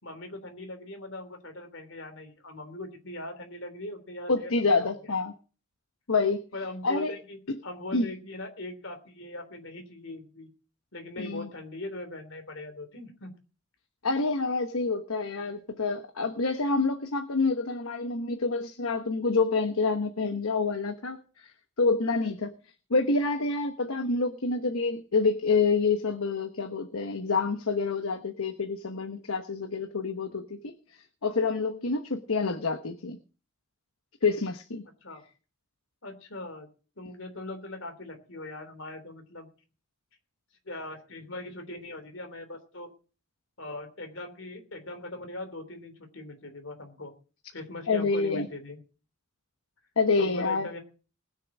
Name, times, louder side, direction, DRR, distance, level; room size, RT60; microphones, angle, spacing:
voice 1, 0.0-4.5 4.8-5.1 6.5-10.5 10.9-13.3 35.0-35.2 36.0-36.7 37.0-39.5 40.6-42.9 43.6-47.1 47.5-48.8 50.2-50.8, left 2 dB, 60° left, 6 dB, 3.4 m, -40 dB
voice 2, 4.3-5.3 6.1-6.4 6.8-7.1 7.5-7.6 7.9-8.1 11.2-11.5 14.0-21.5 21.8-22.5 22.9-33.2 34.2-34.8 47.9-48.5 50.0-50.7, left 4 dB, 75° left, 7 dB, 1.1 m, -27 dB
20.0 x 6.9 x 6.1 m, 0.38 s
head